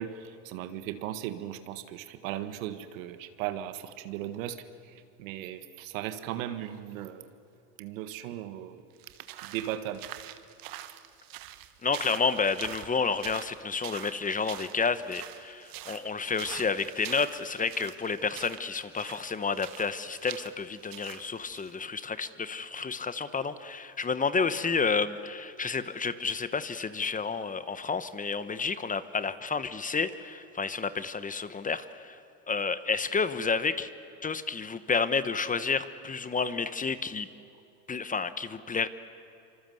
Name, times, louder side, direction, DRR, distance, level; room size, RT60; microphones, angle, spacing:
voice 1, 0.0-7.3 7.8-8.8 9.4-10.1, right 11 dB, 85° right, 10 dB, 1.7 m, -37 dB
sound 1, 9.0-21.8, right 14 dB, 60° right, 1.5 m, -45 dB
voice 2, 11.8-32.2 32.5-33.9 34.2-37.3 37.9-38.9, left 5 dB, 20° left, 13 dB, 1.2 m, -30 dB
25.5 x 25.5 x 7.9 m, 2.8 s
supercardioid pair, 105°, 39 cm